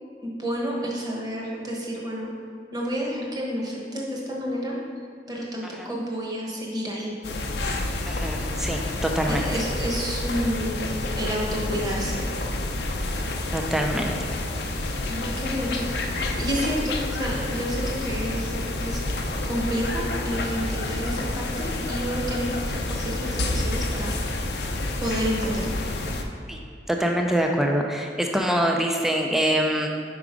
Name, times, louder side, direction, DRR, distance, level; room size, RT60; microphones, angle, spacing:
voice 1, 0.2-2.3 2.7-4.8 5.3-7.1 9.3-12.3 15.1-15.8 16.4-19.0 19.4-24.1 25.0-25.7, equal, 20° right, -3 dB, 1.0 m, -30 dB
sound 1, 7.2-26.2, left 2 dB, 65° left, 0.5 m, -29 dB
voice 2, 8.1-9.5 13.5-14.2 26.5-26.6 26.9-29.9, right 1 dB, ahead, 2 dB, 0.3 m, -24 dB
4.8 x 4.6 x 5.0 m, 2.2 s
head